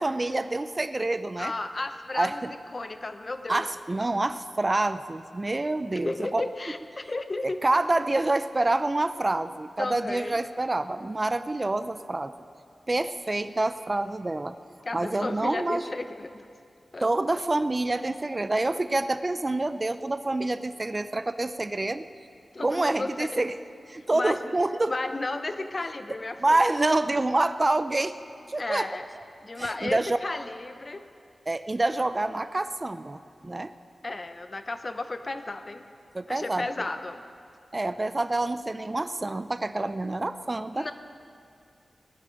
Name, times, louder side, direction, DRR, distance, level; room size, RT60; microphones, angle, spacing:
voice 1, 0.0-1.5 2.1-2.5 3.5-6.4 7.4-12.3 12.9-14.6 14.9-15.8 17.0-22.0 22.6-23.6 23.9-24.9 26.4-28.2 28.5-28.9 29.6-30.2 31.5-33.7 36.1-36.7 37.7-40.9, right 2 dB, 30° right, 11 dB, 0.6 m, -27 dB
voice 2, 1.4-2.4 2.7-3.7 5.9-7.6 9.8-10.4 14.8-16.5 16.9-17.1 22.5-23.5 23.9-24.6 24.9-26.7 28.6-29.1 29.4-31.0 34.0-35.9 36.3-37.2 40.7-40.9, left 2 dB, 45° left, 8 dB, 0.9 m, -33 dB
19.5 x 11.0 x 5.3 m, 2.4 s
wide cardioid pair, 65°, 0 cm